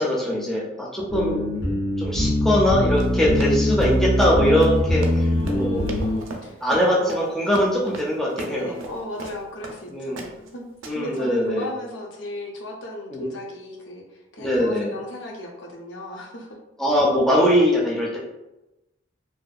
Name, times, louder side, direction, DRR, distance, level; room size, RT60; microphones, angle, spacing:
voice 1, 0.0-1.4 2.0-5.2 5.5-5.8 6.6-8.7 9.9-10.2 10.9-11.7 13.1-13.2 14.4-14.9 16.8-18.2, equal, ahead, -5 dB, 0.4 m, -21 dB
sound 1, 1.1-6.2, left 1 dB, 80° left, 1.5 m, -23 dB
Run, 2.9-9.8 10.2-10.5 10.8-11.2, right 2 dB, 80° right, 0.4 m, -36 dB
voice 2, 3.4-4.1 5.2-7.3 8.4-16.6, left 1 dB, 65° left, 0 dB, 0.5 m, -36 dB
2.6 x 2.2 x 2.3 m, 0.96 s
head